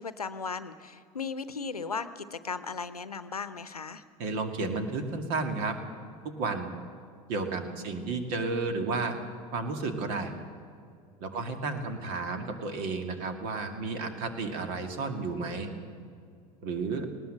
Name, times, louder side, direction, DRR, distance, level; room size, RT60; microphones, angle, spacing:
voice 1, 0.0-4.0 7.8-8.2 11.3-11.4, left 5 dB, 80° left, 13 dB, 0.8 m, -37 dB
voice 2, 4.2-5.8 6.2-6.7 7.3-9.2 9.5-10.3 11.2-15.7 16.6-17.1, right 3 dB, 50° right, 6 dB, 2.3 m, -32 dB
19.5 x 18.5 x 7.7 m, 2.3 s
figure-of-eight pair, 70°, 19 cm